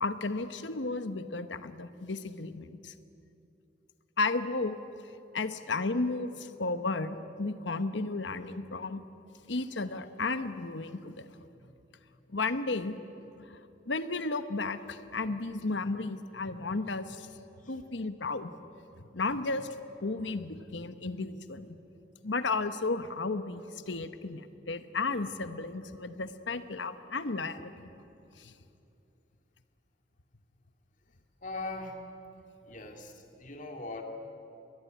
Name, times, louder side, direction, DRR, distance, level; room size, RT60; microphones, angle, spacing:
voice 1, 0.0-2.9 4.2-4.8 5.3-9.0 9.5-11.5 12.3-13.0 13.9-17.3 17.7-18.5 19.1-19.7 20.0-21.8 22.2-27.9 28.4-28.5, left 3 dB, 75° left, 11 dB, 1.1 m, -33 dB
voice 2, 31.4-32.0 32.7-34.0, left 2 dB, 45° left, 4 dB, 2.4 m, -40 dB
22.5 x 20.0 x 9.2 m, 2.8 s
head